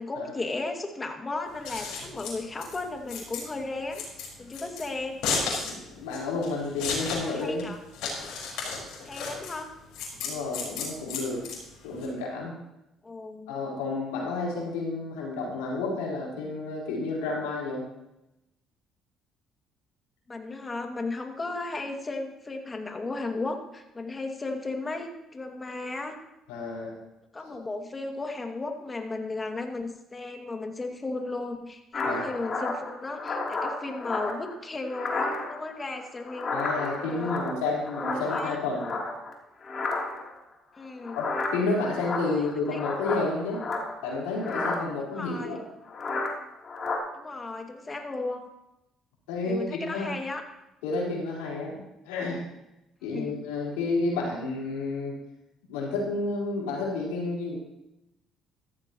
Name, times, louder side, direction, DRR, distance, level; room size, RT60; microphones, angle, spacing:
voice 1, 0.0-4.0 4.4-5.2 7.3-7.8 9.0-9.7 13.0-13.6 20.3-26.2 27.3-36.6 37.0-37.4 38.3-38.6 40.8-41.2 42.3-42.4 42.7-42.8 45.1-45.6 47.1-48.5 49.4-50.4 53.0-53.5, left 3 dB, 25° left, 4 dB, 2.2 m, -35 dB
Scissors, 1.5-12.1, left 4 dB, 75° left, 4.8 m, -34 dB
voice 2, 5.7-7.6 10.2-11.4 11.8-12.5 13.5-17.8 26.5-27.0 32.0-32.3 36.5-39.0 41.1-43.6 44.0-45.6 49.3-50.1 50.8-52.4 53.0-55.2 55.7-57.6, left 3 dB, 90° left, -4 dB, 4.3 m, -30 dB
sound 1, 31.9-34.5 34.9-35.7 36.0-39.3 39.6-40.4 41.0-44.1 44.4-44.8 45.9-46.3 46.6-47.0, left 3 dB, 45° left, 3.2 m, -32 dB
15.0 x 14.0 x 3.0 m, 0.90 s
supercardioid pair, 65°, 0 cm